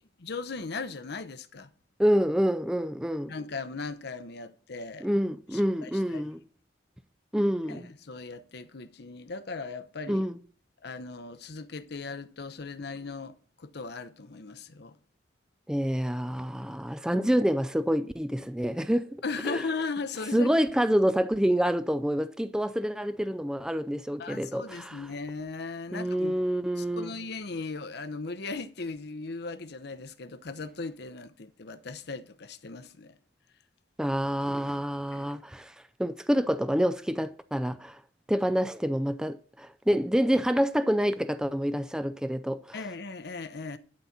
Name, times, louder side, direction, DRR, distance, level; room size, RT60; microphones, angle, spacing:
voice 1, 0.2-1.7 3.3-5.1 5.5-6.2 7.7-10.2 10.8-15.0 19.2-20.5 24.2-26.4 26.8-33.2 35.1-35.3 42.7-43.8, left 4 dB, 65° left, 0.8 m, -38 dB
voice 2, 2.0-3.3 5.0-6.4 7.3-7.9 10.1-10.4 15.7-19.2 19.4-19.6 20.3-25.0 25.9-27.1 34.0-35.7 36.0-38.0 38.3-42.8, equal, 5° right, 0.4 m, -27 dB
11.5 x 4.2 x 7.3 m
head